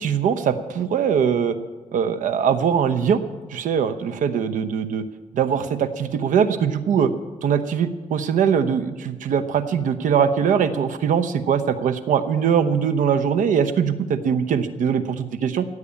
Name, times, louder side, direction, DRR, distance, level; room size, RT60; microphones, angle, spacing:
voice 1, 0.0-1.6 1.9-3.2 3.5-5.1 5.3-7.1 7.4-15.7, right 7 dB, 85° right, 12 dB, 1.0 m, -21 dB
16.0 x 8.4 x 8.5 m, 1.3 s
cardioid pair, 90°, 13 cm